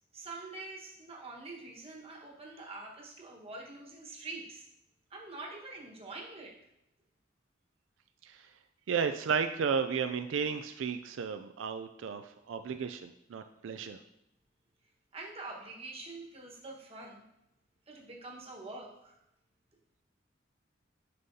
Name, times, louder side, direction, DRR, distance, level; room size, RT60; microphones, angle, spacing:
voice 1, 0.1-4.7 5.1-6.5 15.1-17.2 17.9-19.2, right 3 dB, 30° right, -2 dB, 1.4 m, -45 dB
voice 2, 8.9-14.0, right 6 dB, 85° right, 8 dB, 0.4 m, -33 dB
9.6 x 5.4 x 2.8 m, 0.82 s
head